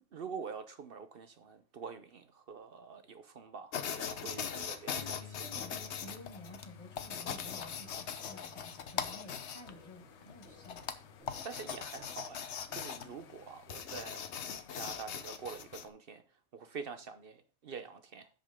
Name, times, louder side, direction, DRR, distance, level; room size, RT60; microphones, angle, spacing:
voice 1, 0.1-5.2 11.4-14.2 14.7-18.3, right 5 dB, 60° right, 0.9 m, -46 dB
sound 1, 3.7-15.9, left 7 dB, 85° left, 1.1 m, -41 dB
voice 2, 4.2-11.0, left 1 dB, 30° left, 1.8 m, -52 dB
Bass guitar, 5.0-11.2, left 6 dB, 65° left, 1.6 m, -55 dB
sound 2, 7.4-13.4, left 1 dB, 80° right, 3.3 m, -61 dB
12.5 x 5.3 x 3.6 m
omnidirectional pair, 1.1 m